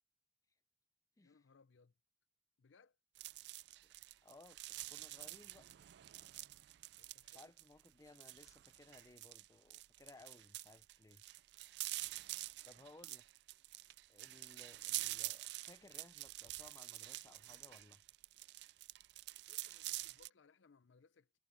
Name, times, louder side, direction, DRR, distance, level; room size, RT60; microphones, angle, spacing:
voice 1, 1.2-1.9 2.6-3.0 7.0-7.5 19.5-21.4, left 4 dB, 80° left, 0.6 m, -68 dB
sound 1, 3.2-20.3, right 18 dB, 60° right, 0.3 m, -47 dB
voice 2, 4.2-5.7 7.3-11.2 12.6-13.2 14.1-18.0, left 2 dB, 20° left, 0.5 m, -61 dB
head